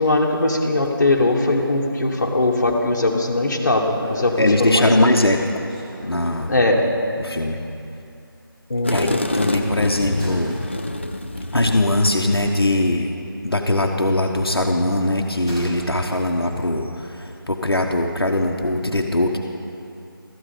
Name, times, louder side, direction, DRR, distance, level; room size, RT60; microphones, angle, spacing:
voice 1, 0.0-5.1 6.5-6.9 8.7-9.1, left 2 dB, 50° left, 0 dB, 1.3 m, -20 dB
sound 1, 4.0-6.7 7.1-7.3 7.5-7.6 9.3-13.2 13.5-15.9 16.2-16.3, equal, 10° right, 0.9 m, -38 dB
voice 2, 4.4-5.4 6.0-6.5 7.2-7.6 8.9-10.5 11.5-13.1 13.4-19.4, left 1 dB, 85° left, 2 dB, 1.0 m, -20 dB
sound 2, 8.8-12.9, left 1 dB, 30° left, 0.4 m, -27 dB
13.5 x 4.9 x 8.4 m, 2.6 s
figure-of-eight pair, 165°, 12 cm